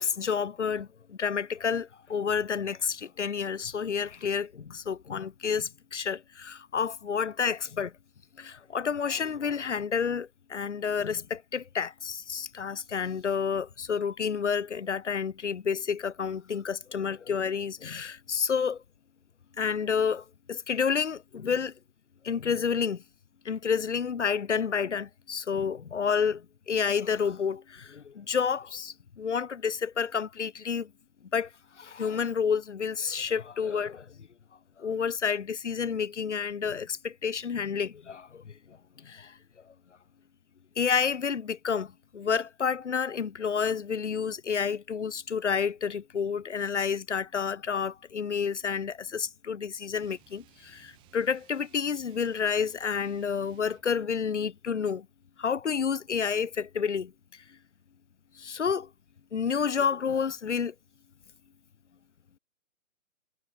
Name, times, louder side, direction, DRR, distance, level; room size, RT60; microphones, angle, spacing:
voice 1, 0.0-7.9 8.4-18.8 19.6-21.7 22.2-23.0 23.5-30.9 31.3-31.5 31.8-34.1 34.8-39.4 40.8-55.1 55.4-57.4 58.4-58.9 59.3-60.7, left 6 dB, 55° left, 1.7 m, -30 dB
sound 1, 50.0-54.0, right 20 dB, 10° right, 8.0 m, -62 dB
hypercardioid pair, 175°, 41 cm